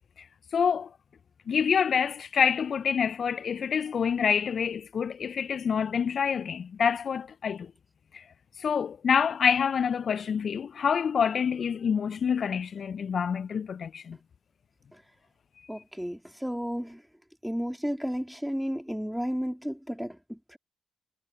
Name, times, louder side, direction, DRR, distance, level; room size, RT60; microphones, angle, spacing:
voice 1, 0.5-0.9 1.5-7.7 8.1-8.2 8.6-14.2, left 7 dB, 50° left, 0.9 m, -27 dB
voice 2, 15.7-17.0 17.4-20.6, equal, ahead, 2.9 m, -33 dB
hypercardioid pair, 45°, 0 cm